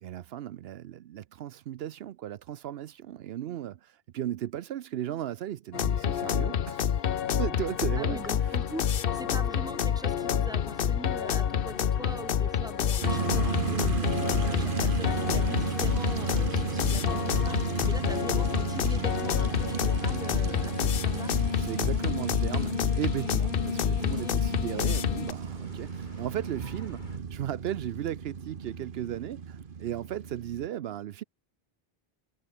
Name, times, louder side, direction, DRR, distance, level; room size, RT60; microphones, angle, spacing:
voice 1, 0.0-7.1 7.4-8.2 21.6-31.2, right 11 dB, 80° right, 0.8 m, -36 dB
sound 1, 5.7-25.3, left 9 dB, 65° left, 0.9 m, -28 dB
sound 2, 8.0-27.2, left 1 dB, 50° left, 5.6 m, -48 dB
voice 2, 8.0-21.3 24.2-24.4, right 1 dB, 5° right, 1.9 m, -42 dB
sound 3, 13.0-30.7, right 6 dB, 60° right, 1.2 m, -34 dB
omnidirectional pair, 1.0 m